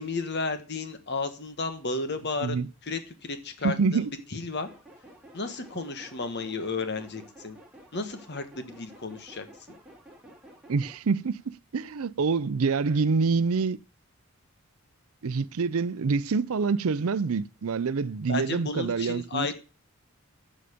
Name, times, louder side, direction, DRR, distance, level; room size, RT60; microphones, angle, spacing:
voice 1, 0.0-2.6 2.8-4.7 5.3-7.6 7.9-9.5 18.3-19.5, left 3 dB, 50° left, 1.3 m, -33 dB
voice 2, 3.6-4.1 10.7-13.8 15.2-19.5, right 4 dB, 75° right, 0.5 m, -26 dB
sound 1, 4.6-11.0, right 1 dB, 5° right, 3.0 m, -51 dB
11.0 x 6.5 x 5.1 m
head